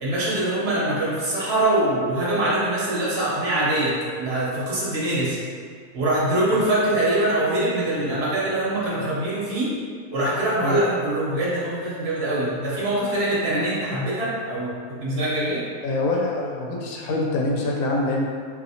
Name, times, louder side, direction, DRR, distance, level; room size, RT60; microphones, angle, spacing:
voice 1, 0.0-3.9 4.2-5.4 5.9-9.7 10.1-14.7 15.0-15.6, right 1 dB, 50° right, -7 dB, 1.2 m, -23 dB
voice 2, 15.8-18.2, left 2 dB, 85° left, -1 dB, 1.0 m, -24 dB
4.1 x 2.7 x 2.8 m, 2.1 s
omnidirectional pair, 1.4 m